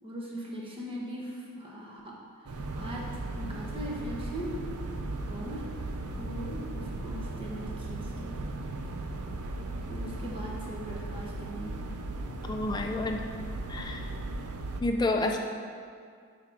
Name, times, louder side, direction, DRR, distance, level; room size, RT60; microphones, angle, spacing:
voice 1, 0.0-4.6 5.2-5.7 6.2-8.4 9.9-11.9, equal, 25° right, -4 dB, 1.0 m, -40 dB
sound 1, 2.5-14.8, right 2 dB, 80° right, 0.5 m, -37 dB
voice 2, 12.5-13.2 13.7-14.0 14.8-15.4, left 2 dB, 20° left, 3 dB, 0.4 m, -29 dB
9.1 x 3.6 x 4.8 m, 2.2 s
head